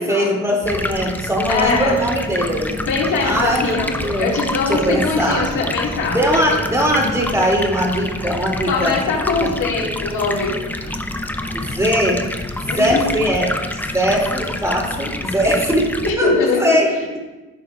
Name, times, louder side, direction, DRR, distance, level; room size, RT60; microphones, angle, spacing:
voice 1, 0.0-2.8 3.2-4.4 4.7-5.5 6.0-9.0 9.4-9.5 11.5-12.2 12.6-13.5 13.9-17.2, equal, 10° right, -1 dB, 2.2 m, -20 dB
Stream, 0.6-16.1, left 1 dB, 5° left, 0.6 m, -27 dB
voice 2, 1.5-2.0 2.9-6.2 8.7-10.6 12.7-13.0 16.0-16.8, left 4 dB, 80° left, -1 dB, 1.9 m, -21 dB
14.5 x 5.6 x 2.3 m, 1.2 s
cardioid pair, 90°, 30 cm